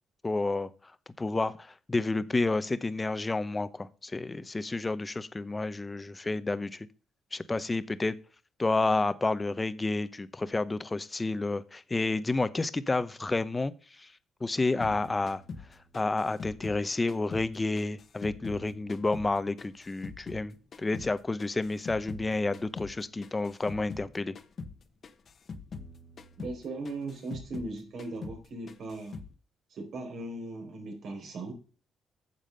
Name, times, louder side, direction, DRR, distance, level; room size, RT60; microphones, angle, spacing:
voice 1, 0.2-0.9 1.2-6.9 7.3-8.2 8.6-14.1 14.4-15.4 15.9-24.4, left 3 dB, 20° left, 14 dB, 0.8 m, -30 dB
sound 1, 14.8-17.5 17.8-20.5 20.7-24.1 24.3-24.8 25.0-27.7 28.0-28.4 28.7-29.3, left 4 dB, 50° left, 1.2 m, -43 dB
voice 2, 26.4-29.2 29.7-31.5, right 2 dB, 65° right, 3 dB, 4.3 m, -38 dB
9.5 x 7.3 x 5.3 m, 0.37 s
cardioid pair, 90°, 0 cm